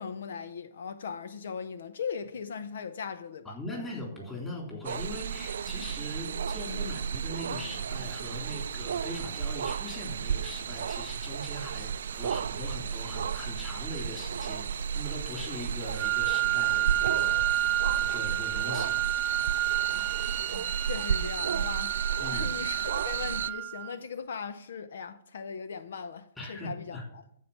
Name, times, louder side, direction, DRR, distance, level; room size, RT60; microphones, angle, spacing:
voice 1, 0.0-3.6 20.5-27.2, left 6 dB, 75° left, 0.7 m, -39 dB
voice 2, 3.4-19.1 22.2-22.5 26.4-27.0, left 1 dB, 10° left, 3.5 m, -40 dB
sound 1, 4.8-23.5, right 7 dB, 75° right, 0.4 m, -33 dB
Wind instrument woodwind instrument, 16.0-23.9, right 15 dB, 20° right, 0.5 m, -30 dB
14.0 x 4.7 x 7.2 m
hypercardioid pair, 155°, 0 cm